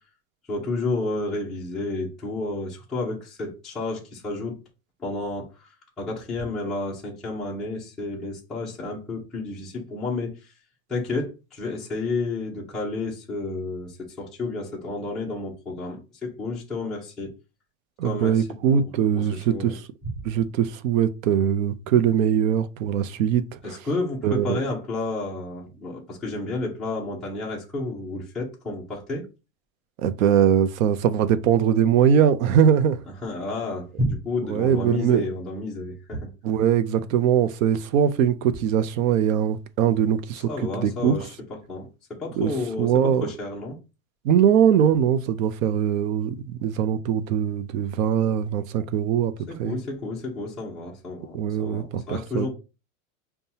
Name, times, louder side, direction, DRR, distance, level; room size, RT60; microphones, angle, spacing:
voice 1, 0.5-4.6 5.0-5.7 6.0-10.3 10.9-17.3 18.0-18.5 18.7-18.9 19.3-19.7 23.6-29.2 33.2-36.3 40.5-41.3 41.7-43.8 49.5-52.5, left 2 dB, ahead, 0.4 m, -31 dB
voice 2, 18.0-19.8 20.2-23.8 24.2-24.6 30.0-33.0 34.5-35.2 36.4-41.3 42.4-42.5 42.8-43.3 44.2-49.3 49.6-49.8 51.3-52.5, right 9 dB, 70° right, 0.6 m, -21 dB
5.4 x 2.3 x 2.7 m
supercardioid pair, 155°, 42 cm